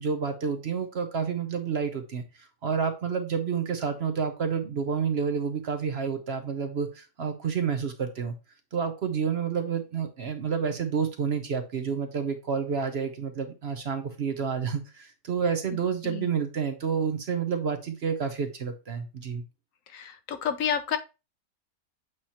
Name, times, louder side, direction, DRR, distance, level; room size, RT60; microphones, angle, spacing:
voice 1, 0.0-8.3 8.7-19.4, right 6 dB, 55° right, 7 dB, 0.9 m, -29 dB
voice 2, 19.9-21.0, left 8 dB, 70° left, 10 dB, 1.0 m, -30 dB
7.9 x 3.0 x 4.2 m, 0.29 s
omnidirectional pair, 1.6 m